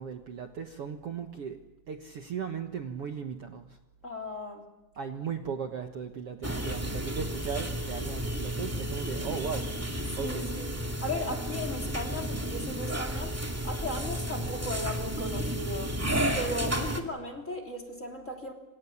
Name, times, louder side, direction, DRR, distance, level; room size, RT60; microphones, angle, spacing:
voice 1, 0.0-1.6 1.9-3.8 5.0-10.5, right 6 dB, 55° right, 5 dB, 2.0 m, -37 dB
voice 2, 4.0-4.7 10.1-10.7 11.0-16.0 16.3-18.5, left 1 dB, 25° left, 6 dB, 3.4 m, -36 dB
sound 1, 6.4-17.0, right 1 dB, 5° right, 1.7 m, -32 dB
28.0 x 26.5 x 7.2 m, 0.97 s
omnidirectional pair, 3.8 m